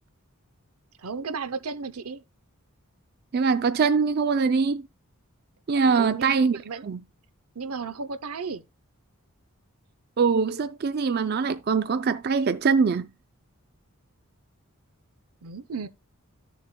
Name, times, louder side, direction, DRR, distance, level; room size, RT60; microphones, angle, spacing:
voice 1, 1.0-2.2 5.9-6.9 7.5-8.6 15.4-15.9, right 4 dB, 80° right, 0.7 m, -34 dB
voice 2, 3.3-4.8 5.7-7.0 10.2-13.1, right 5 dB, 45° right, 0.4 m, -23 dB
14.0 x 7.0 x 2.2 m
head